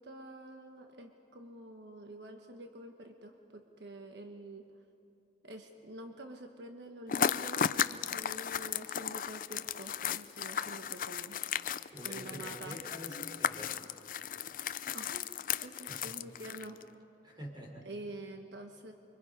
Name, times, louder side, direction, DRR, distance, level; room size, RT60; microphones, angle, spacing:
voice 1, 0.0-4.7 5.4-11.4 12.0-12.8 14.9-15.2 15.6-16.8 17.8-18.9, right 1 dB, 80° right, 4 dB, 1.2 m, -47 dB
sound 1, 7.1-16.8, left 8 dB, 50° left, 0.5 m, -35 dB
voice 2, 11.9-13.7 15.8-16.1 17.2-17.9, equal, 25° right, 0 dB, 4.2 m, -47 dB
29.5 x 24.5 x 5.3 m, 2.7 s
head